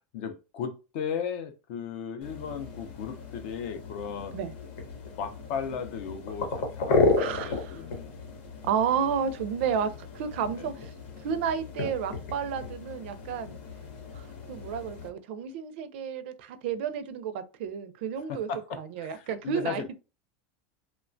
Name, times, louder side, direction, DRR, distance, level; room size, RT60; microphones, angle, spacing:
voice 1, 0.1-4.4 5.2-8.2 10.5-10.7 13.4-13.6 18.3-20.0, left 7 dB, 50° left, 0.5 m, -36 dB
sound 1, 2.2-15.1, left 3 dB, 85° left, 1.0 m, -33 dB
voice 2, 7.2-7.8 8.6-10.9 11.2-13.6 14.1-18.5 18.8-19.8, right 7 dB, 60° right, 0.4 m, -31 dB
3.0 x 2.2 x 2.5 m
supercardioid pair, 175°, 7 cm